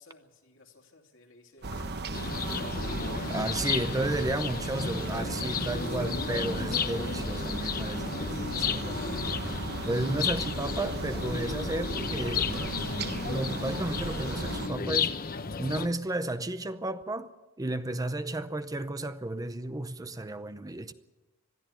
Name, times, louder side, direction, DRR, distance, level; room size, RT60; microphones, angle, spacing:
voice 1, 0.0-2.3 2.7-2.9 9.8-10.4 15.5-16.0 18.0-18.1, left 3 dB, 65° left, 2.9 m, -55 dB
sound 1, 1.6-13.3, left 2 dB, 80° left, 2.5 m, -56 dB
sound 2, 1.6-14.7, right 2 dB, 50° right, 1.0 m, -36 dB
sound 3, 2.1-15.9, left 5 dB, 45° left, 0.8 m, -33 dB
voice 2, 3.3-9.0 9.9-12.5 13.2-15.2 15.6-17.3 17.6-20.9, right 2 dB, 15° right, 0.6 m, -33 dB
21.5 x 13.5 x 9.1 m
head